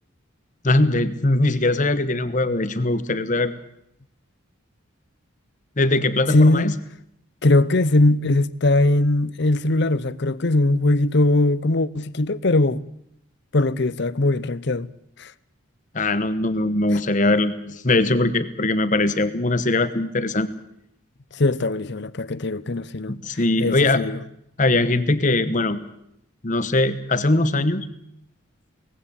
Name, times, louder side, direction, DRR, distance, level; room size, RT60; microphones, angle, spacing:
voice 1, 0.6-3.6 5.8-6.7 15.9-20.5 23.1-24.0 24.6-25.8 26.4-27.9, left 2 dB, 35° left, 1.1 m, -21 dB
voice 2, 6.3-6.8 7.4-12.8 13.5-14.9 15.2-15.3 16.9-17.0 21.3-23.2 23.6-24.2, left 2 dB, 50° left, 0.7 m, -20 dB
19.0 x 16.0 x 10.0 m
head